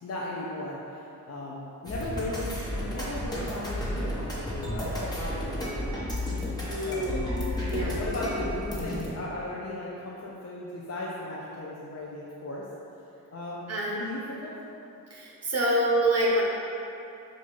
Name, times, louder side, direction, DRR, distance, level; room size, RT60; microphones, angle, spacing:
voice 1, 0.0-0.8 1.3-6.0 6.8-7.3 7.6-12.6 13.3-14.5, left 1 dB, 45° left, -5 dB, 0.7 m, -36 dB
sound 1, 1.8-9.1, left 1 dB, 10° left, 1.5 m, -32 dB
voice 2, 6.7-7.2 7.7-8.1 13.7-14.1 15.1-16.4, right 1 dB, 45° right, -4 dB, 1.1 m, -26 dB
6.3 x 2.7 x 5.4 m, 2.9 s
cardioid pair, 100°, 36 cm